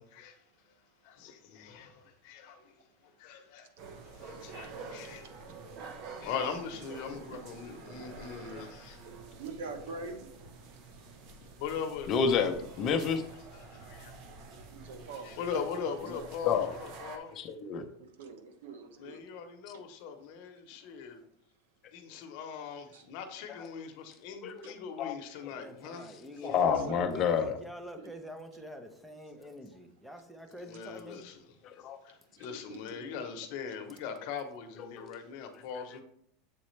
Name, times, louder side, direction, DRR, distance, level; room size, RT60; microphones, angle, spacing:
voice 1, 0.1-0.4 1.0-3.7 4.0-5.3 6.2-9.1 10.8-10.9 11.6-12.2 13.5-14.1 15.0-17.5 19.0-21.2 21.9-26.1 26.4-26.5 30.6-31.6 32.0-36.0, left 6 dB, 60° left, 0.9 m, -41 dB
sound 1, 3.8-17.2, right 4 dB, 50° right, 0.9 m, -48 dB
voice 2, 9.4-10.3 14.5-15.3 16.1-16.3 18.0-19.2 22.9-23.0 26.4-27.2 28.0-28.1 32.4-32.8, right 4 dB, 85° right, 0.9 m, -44 dB
voice 3, 12.1-13.2 16.4-16.7 17.4-17.8 24.4-24.6 25.0-25.1 26.4-27.6 31.6-32.0 35.0-35.1, left 6 dB, 35° left, 0.6 m, -29 dB
voice 4, 25.5-31.2, equal, 5° right, 0.7 m, -46 dB
7.4 x 4.1 x 3.2 m
supercardioid pair, 140°, 0 cm